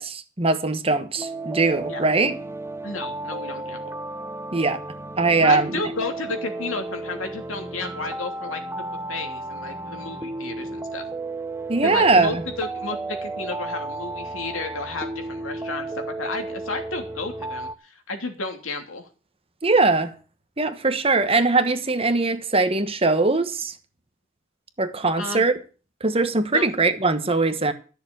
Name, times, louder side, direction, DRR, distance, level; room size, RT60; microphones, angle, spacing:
voice 1, 0.0-2.4 4.5-4.8 5.2-5.7 11.7-12.4 19.6-20.1 20.6-23.7 24.8-25.5 26.0-27.7, right 3 dB, 30° right, 1.2 m, -21 dB
sound 1, 1.2-17.7, right 2 dB, 10° right, 0.6 m, -33 dB
voice 2, 2.8-3.9 5.4-11.0 11.8-19.1 25.2-25.4 26.5-26.6, left 3 dB, 85° left, 2.9 m, -32 dB
13.5 x 6.9 x 7.8 m
head